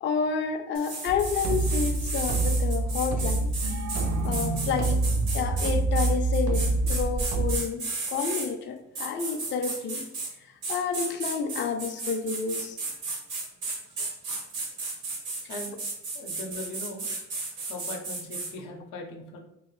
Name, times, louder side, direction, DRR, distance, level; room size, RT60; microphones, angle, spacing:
voice 1, 0.0-3.5 4.2-5.1 5.3-10.1 10.4-12.8, left 6 dB, 40° left, 5 dB, 0.4 m, -30 dB
sound 1, 0.7-8.5 8.9-10.3 10.6-18.5, right 3 dB, 90° right, 1.2 m, -34 dB
sound 2, 1.1-7.6, right 2 dB, 70° right, 0.5 m, -26 dB
voice 2, 15.5-15.8 16.1-17.1 17.7-19.4, left 2 dB, 85° left, 2 dB, 0.7 m, -39 dB
3.1 x 2.4 x 3.0 m, 0.86 s
cardioid pair, 90°, 30 cm